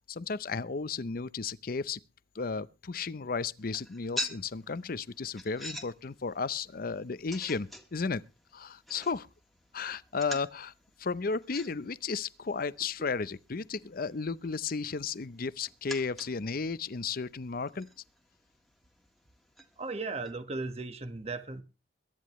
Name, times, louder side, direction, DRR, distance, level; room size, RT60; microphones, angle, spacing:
voice 1, 0.1-2.0 2.3-8.2 8.5-9.3 9.7-10.7 11.0-17.9, left 4 dB, 55° left, 0.6 m, -34 dB
sound 1, 3.6-20.3, equal, ahead, 1.6 m, -47 dB
voice 2, 19.8-21.6, right 3 dB, 35° right, 1.3 m, -36 dB
22.5 x 10.5 x 3.1 m
head